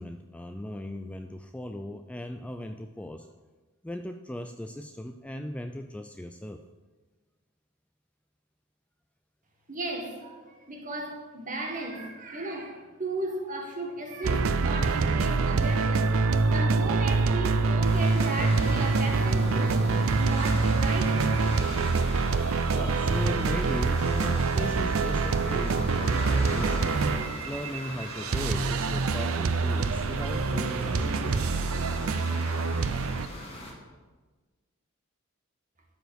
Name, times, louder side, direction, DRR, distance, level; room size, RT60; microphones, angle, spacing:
voice 1, 0.0-3.3 3.8-6.6 22.6-27.0 27.4-31.4, left 1 dB, 5° left, 6 dB, 0.3 m, -37 dB
voice 2, 9.7-16.1 16.5-19.9 20.2-21.5, right 2 dB, 40° right, 1 dB, 1.8 m, -35 dB
sound 1, 14.2-33.3, right 4 dB, 85° right, 0.5 m, -25 dB
sound 2, 17.8-33.7, left 1 dB, 30° left, 2.0 m, -40 dB
12.5 x 5.0 x 6.5 m, 1.3 s
head